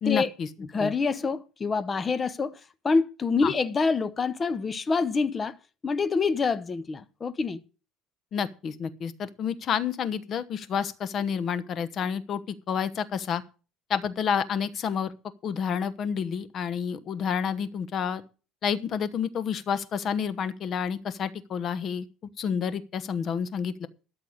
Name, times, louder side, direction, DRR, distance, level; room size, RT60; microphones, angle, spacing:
voice 1, 0.0-0.5 0.8-0.9 3.4-3.5 8.3-13.4 13.9-15.1 15.4-18.2 18.6-22.0 22.4-23.9, left 7 dB, 45° left, 1.0 m, -29 dB
voice 2, 0.6-2.6 2.8-5.5 5.8-7.6, left 4 dB, 25° left, 0.7 m, -26 dB
13.0 x 6.6 x 6.4 m
cardioid pair, 130°, 0 cm